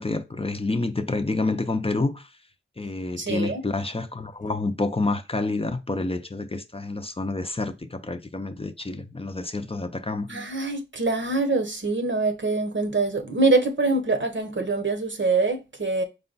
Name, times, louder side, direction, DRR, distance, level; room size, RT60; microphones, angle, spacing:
voice 1, 0.0-2.3 2.8-10.3, left 3 dB, 30° left, 0.5 m, -28 dB
voice 2, 3.2-3.6 10.3-16.0, right 3 dB, 65° right, 0.9 m, -24 dB
4.8 x 2.2 x 3.9 m
wide cardioid pair, 45°, 21 cm